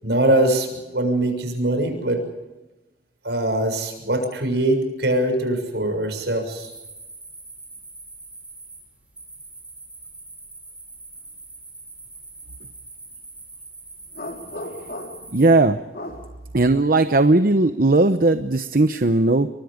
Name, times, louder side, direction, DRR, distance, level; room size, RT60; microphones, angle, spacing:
voice 1, 0.0-2.2 3.2-6.7, right 1 dB, 75° right, 6 dB, 6.8 m, -22 dB
sound 1, 6.5-15.5, right 3 dB, 5° right, 7.7 m, -43 dB
sound 2, 14.1-15.4 15.9-16.3, left 1 dB, 55° left, 4.1 m, -35 dB
voice 2, 15.3-15.8 16.5-19.5, right 2 dB, 55° right, 9 dB, 0.9 m, -17 dB
28.5 x 24.0 x 5.2 m, 1.1 s
head